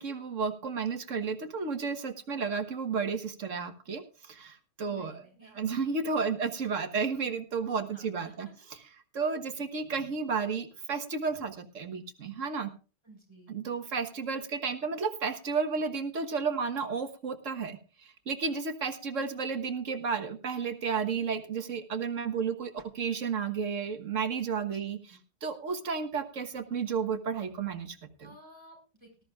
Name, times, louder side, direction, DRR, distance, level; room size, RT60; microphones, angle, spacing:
voice 1, 0.0-8.8 9.1-12.7 13.5-25.0 25.4-28.3, right 5 dB, 90° right, 7 dB, 1.7 m, -32 dB
voice 2, 4.8-5.6 7.9-8.7 13.0-13.8 19.1-19.4 24.7-25.2 28.2-29.2, equal, 20° right, 0 dB, 6.7 m, -56 dB
19.5 x 13.0 x 2.4 m, 0.35 s
omnidirectional pair, 1.3 m